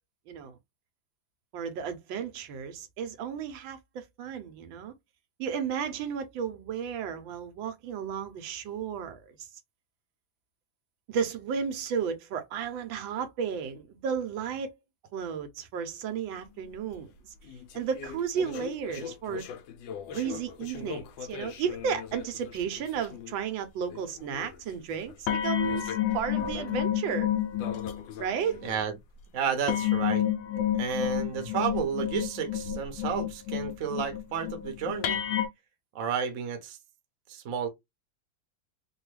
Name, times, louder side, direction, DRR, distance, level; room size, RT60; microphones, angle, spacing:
voice 1, 0.3-0.6 1.5-4.9 5.4-9.5 11.1-14.7 15.1-17.3 17.7-19.4 20.1-27.3 28.2-28.6, right 7 dB, 85° right, 1.5 m, -33 dB
sound 1, 17.5-22.7 23.0-23.3 23.9-24.5 25.3-28.8 29.7-35.5, left 10 dB, 80° left, 1.3 m, -31 dB
voice 2, 28.6-29.0 29.3-30.2 30.8-35.2 35.9-36.8 37.3-37.7, right 7 dB, 55° right, 1.0 m, -31 dB
3.4 x 2.3 x 3.1 m
omnidirectional pair, 2.1 m